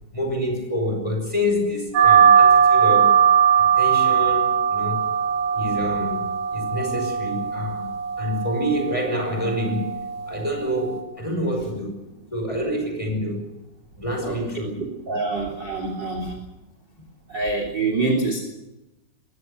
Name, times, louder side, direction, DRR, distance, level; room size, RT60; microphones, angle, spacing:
voice 1, 0.1-3.2 3.5-5.1 5.5-7.9 8.2-10.0 10.3-12.0 12.3-13.4 14.0-14.8, equal, 5° left, 3 dB, 5.1 m, -27 dB
sound 1, 1.9-11.0, right 7 dB, 65° right, 4.7 m, -20 dB
voice 2, 14.8-16.4 17.3-18.4, right 3 dB, 25° right, 3 dB, 2.9 m, -25 dB
23.0 x 18.5 x 6.8 m, 0.99 s
omnidirectional pair, 5.7 m